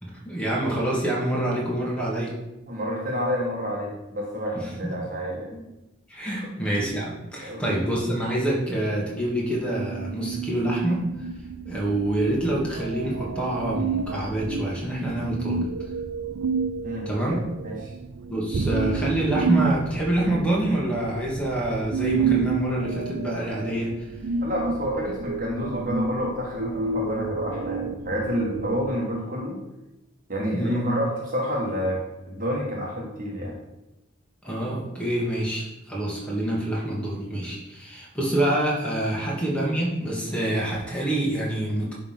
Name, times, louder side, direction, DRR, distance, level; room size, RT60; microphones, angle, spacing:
voice 1, 0.0-2.3 4.5-4.9 6.1-11.0 11.7-15.7 17.1-17.4 18.3-24.1 30.5-31.0 34.4-41.9, right 1 dB, 5° left, -4 dB, 2.2 m, -26 dB
voice 2, 2.7-5.5 6.4-6.5 7.4-7.7 16.8-17.1 17.6-17.7 24.4-29.6 30.3-32.0 32.3-33.6, equal, 45° right, -2 dB, 1.6 m, -29 dB
sound 1, 9.8-28.9, right 5 dB, 85° right, 0.5 m, -30 dB
10.5 x 3.8 x 5.9 m, 0.97 s
head